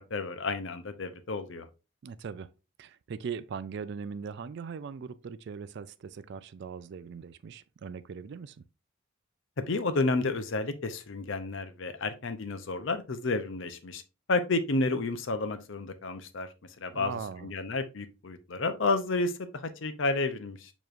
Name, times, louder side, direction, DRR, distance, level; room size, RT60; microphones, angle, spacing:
voice 1, 0.0-1.7 9.6-14.0 14.3-20.7, left 3 dB, 60° left, 0.6 m, -31 dB
voice 2, 2.0-2.5 2.8-8.6 16.9-17.5, right 6 dB, 55° right, 0.3 m, -40 dB
6.7 x 3.0 x 2.5 m
head